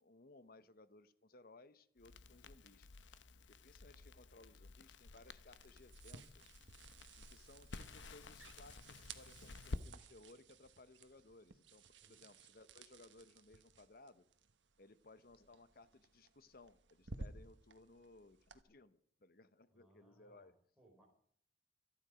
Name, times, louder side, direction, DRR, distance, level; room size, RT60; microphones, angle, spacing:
voice 1, 0.0-2.9 3.6-6.4 7.1-14.3 14.8-20.6, left 2 dB, 50° left, 14 dB, 0.9 m, -62 dB
Crackle, 2.0-9.8, left 3 dB, 80° left, 0.9 m, -52 dB
sound 1, 5.1-18.6, right 3 dB, 80° right, 1.2 m, -57 dB
voice 2, 19.7-21.0, right 1 dB, 5° right, -1 dB, 4.2 m, -70 dB
26.5 x 9.9 x 5.1 m, 0.63 s
head